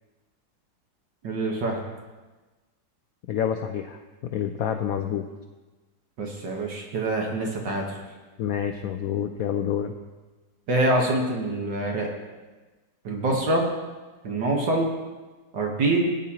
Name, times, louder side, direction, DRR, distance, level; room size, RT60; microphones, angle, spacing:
voice 1, 1.2-1.8 6.2-8.0 10.7-12.1 13.1-13.7 14.2-14.9 15.5-16.1, right 2 dB, 65° right, 0 dB, 1.8 m, -25 dB
voice 2, 3.3-5.3 8.4-9.9, left 9 dB, 80° left, 5 dB, 0.8 m, -28 dB
18.0 x 9.1 x 2.9 m, 1.2 s
omnidirectional pair, 2.1 m